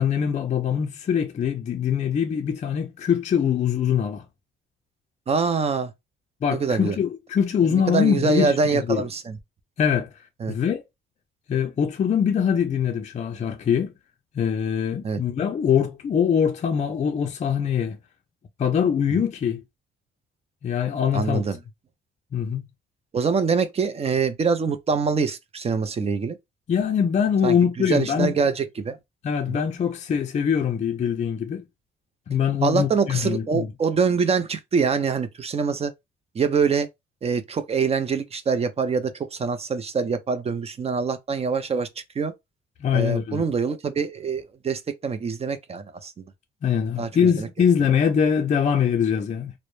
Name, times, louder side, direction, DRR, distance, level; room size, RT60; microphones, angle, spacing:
voice 1, 0.0-4.2 6.4-9.1 9.8-10.8 11.5-13.9 14.3-18.0 18.6-19.6 20.6-21.5 22.3-22.6 26.7-28.3 29.2-31.6 32.3-33.7 42.8-43.5 46.6-49.5, left 7 dB, 35° left, 0.4 m, -23 dB
voice 2, 5.3-5.9 6.6-7.0 7.7-9.4 10.4-10.5 15.0-15.2 21.1-21.6 23.1-26.4 27.4-29.0 32.6-35.9 36.3-36.9 37.2-41.9 42.2-42.3 42.9-46.3 47.0-47.5, right 5 dB, 30° right, 0.4 m, -24 dB
2.0 x 2.0 x 3.0 m
cardioid pair, 90°, 20 cm